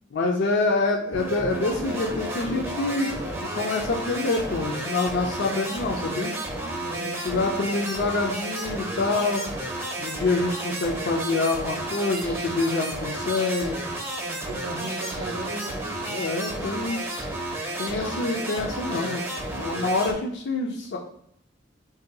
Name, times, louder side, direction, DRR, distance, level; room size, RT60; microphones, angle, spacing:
voice 1, 0.1-3.1 3.4-6.3 7.0-9.5 10.0-13.8 16.0-17.0 17.8-19.2 19.5-21.0, left 3 dB, 60° left, 0 dB, 0.4 m, -26 dB
sound 1, 1.1-20.1, right 1 dB, 10° right, 0.5 m, -32 dB
voice 2, 6.7-7.7 10.3-10.8 11.2-11.5 14.2-15.9, right 2 dB, 70° right, 5 dB, 0.5 m, -38 dB
sound 2, 12.2-12.6 13.4-14.0 14.9-15.4 16.1-16.3 17.0-17.3 17.8-18.3 18.9-19.3 19.8-20.0, left 3 dB, 80° left, 0.9 m, -46 dB
2.7 x 2.2 x 3.8 m, 0.72 s
head